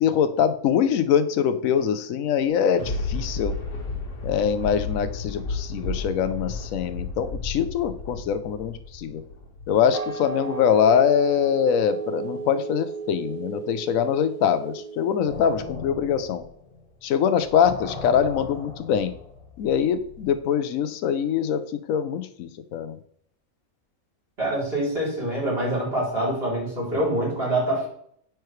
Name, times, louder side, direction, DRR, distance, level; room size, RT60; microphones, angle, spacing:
voice 1, 0.0-3.5 4.2-9.2 9.7-16.4 17.0-19.1 19.6-21.6 21.9-23.0, left 8 dB, 70° left, 11 dB, 1.0 m, -23 dB
Thunder, 2.4-9.9 10.4-10.5, left 3 dB, 90° left, 1.8 m, -32 dB
sound 1, 9.9-15.4, right 5 dB, 75° right, 0.3 m, -34 dB
sound 2, 15.3-17.2 17.4-20.4, left 3 dB, 30° left, 0.9 m, -39 dB
voice 2, 24.4-27.9, right 1 dB, 40° right, -6 dB, 3.5 m, -25 dB
9.2 x 4.7 x 3.1 m, 0.65 s
omnidirectional pair, 1.6 m